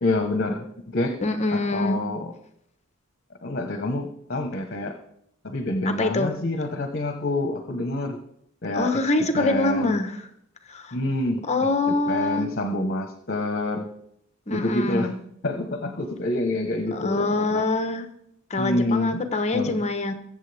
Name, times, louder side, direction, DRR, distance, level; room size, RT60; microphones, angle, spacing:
voice 1, 0.0-0.6 0.9-1.2 1.5-2.3 3.4-4.9 5.4-8.2 8.6-10.0 10.9-13.9 14.5-15.1 15.4-17.6 18.6-19.2 19.5-19.8, left 2 dB, 50° left, 5 dB, 1.2 m, -27 dB
voice 2, 1.2-2.0 6.0-6.4 8.7-10.2 10.7-10.9 11.5-12.5 14.5-15.1 16.9-18.1 18.5-20.1, left 2 dB, 35° left, 7 dB, 1.1 m, -24 dB
22.5 x 7.6 x 3.5 m, 0.72 s
head